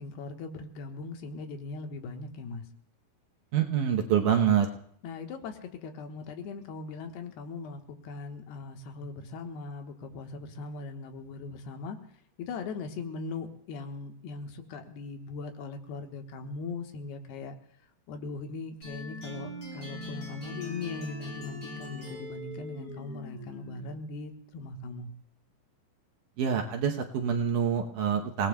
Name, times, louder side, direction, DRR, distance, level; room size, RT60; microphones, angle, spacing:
voice 1, 0.0-2.7 5.0-12.0 12.4-17.6 18.1-25.1, left 4 dB, 90° left, 5 dB, 3.3 m, -39 dB
voice 2, 3.5-4.7 26.4-28.5, right 8 dB, 70° right, 2 dB, 2.1 m, -26 dB
sound 1, 18.8-23.9, left 1 dB, 35° left, 7.5 m, -41 dB
29.0 x 18.0 x 2.3 m, 0.67 s
omnidirectional pair, 4.5 m